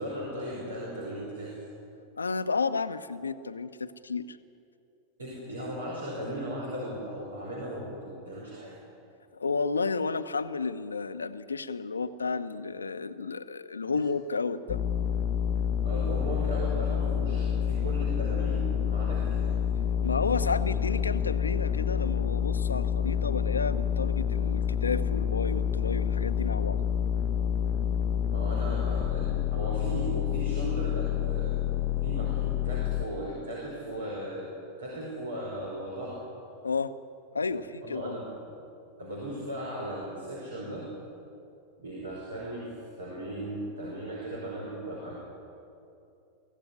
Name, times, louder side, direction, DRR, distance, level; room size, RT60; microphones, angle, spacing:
voice 1, 0.0-1.6 5.2-8.8 15.8-19.5 28.3-31.6 32.0-34.5 34.8-36.2 37.8-38.6 39.0-40.9 41.8-45.1, right 1 dB, 70° right, -2 dB, 4.9 m, -37 dB
voice 2, 2.2-4.4 9.3-14.8 20.0-26.8 36.6-36.9 37.3-38.2, left 4 dB, 75° left, 11 dB, 0.9 m, -32 dB
sound 1, 14.7-33.1, left 9 dB, 40° left, 0.7 m, -28 dB
23.5 x 16.0 x 9.8 m, 2.6 s
figure-of-eight pair, 90°, 0 cm